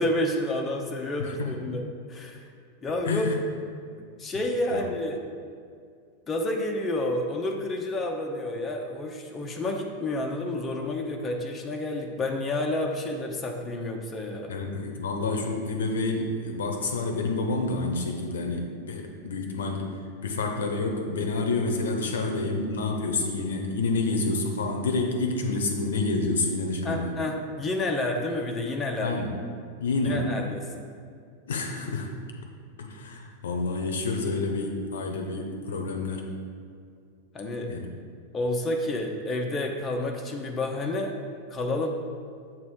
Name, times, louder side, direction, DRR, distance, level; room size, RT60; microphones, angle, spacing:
voice 1, 0.0-1.8 2.1-2.4 2.8-3.3 3.9-5.2 6.3-14.5 26.8-29.2 30.0-30.9 37.3-37.7 38.3-41.2 41.5-42.0, left 1 dB, 20° left, 1 dB, 0.7 m, -29 dB
voice 2, 1.2-1.6 3.0-3.4 4.7-4.8 14.5-20.0 20.2-27.1 29.0-29.4 29.8-30.2 31.5-32.1 32.8-36.2 37.7-37.9, left 3 dB, 65° left, 3 dB, 0.8 m, -28 dB
7.4 x 3.1 x 6.1 m, 2.2 s
figure-of-eight pair, 90°, 0 cm